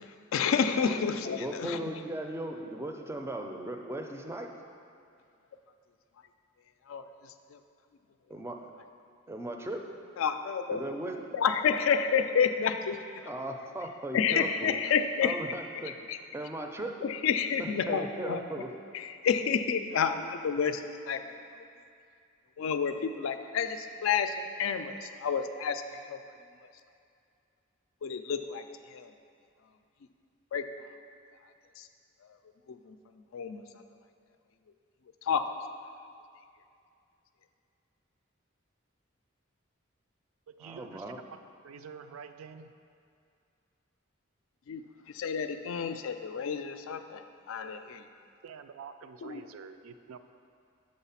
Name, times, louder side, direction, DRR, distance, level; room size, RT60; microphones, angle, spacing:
voice 1, 0.0-1.9 6.9-7.6 10.2-10.8 11.3-13.3 14.1-15.4 15.9-16.2 17.0-18.4 18.9-21.4 22.6-26.2 28.0-29.1 30.5-30.6 31.8-31.9 32.2-32.4 32.7-33.8 35.2-35.4 44.7-44.8 45.1-48.1 49.2-49.5, left 6 dB, 70° left, 8 dB, 0.4 m, -30 dB
voice 2, 1.4-4.5 8.3-8.6 9.3-9.9 10.7-11.1 13.3-14.7 15.2-15.9 16.3-17.1 17.9-18.7 40.6-41.2, right 1 dB, 10° right, 3 dB, 0.4 m, -37 dB
voice 3, 40.5-41.0 41.6-42.7 48.4-50.2, right 6 dB, 85° right, 9 dB, 0.3 m, -47 dB
6.5 x 4.0 x 5.6 m, 2.4 s
head